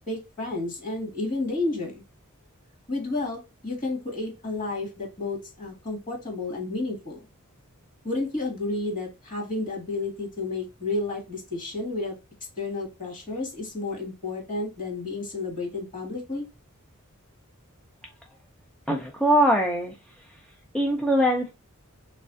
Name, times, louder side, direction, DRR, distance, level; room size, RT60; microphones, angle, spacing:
voice 1, 0.1-2.0 2.9-7.2 8.0-12.2 12.6-16.4, left 2 dB, 40° left, 1.7 m, -31 dB
voice 2, 18.9-19.9 20.7-21.5, equal, 5° left, 0.4 m, -22 dB
3.5 x 3.1 x 2.4 m
head